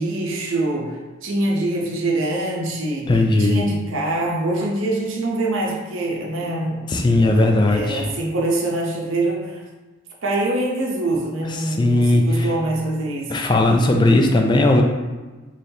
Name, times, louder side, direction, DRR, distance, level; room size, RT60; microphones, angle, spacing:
voice 1, 0.0-6.9 7.2-7.4 7.7-9.6 10.2-13.5, right 2 dB, 70° right, -1 dB, 0.7 m, -24 dB
voice 2, 3.1-3.6 6.9-8.1 11.6-12.5 13.3-14.8, left 2 dB, 20° left, 3 dB, 0.3 m, -17 dB
3.9 x 3.2 x 2.8 m, 1.2 s
head